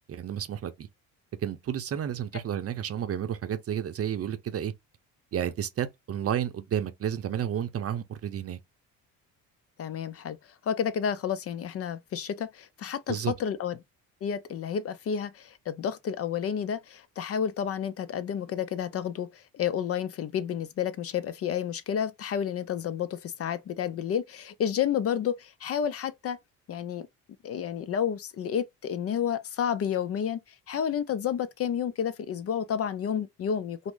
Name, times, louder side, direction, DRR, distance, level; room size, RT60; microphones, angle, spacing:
voice 1, 0.1-0.9 1.4-4.7 5.3-8.6 13.1-13.3, right 9 dB, 45° right, 0.6 m, -31 dB
voice 2, 9.8-13.8 14.2-26.4 26.7-27.1 27.4-33.9, left 8 dB, 45° left, 0.4 m, -30 dB
3.5 x 2.0 x 3.7 m
cardioid pair, 85°, 34 cm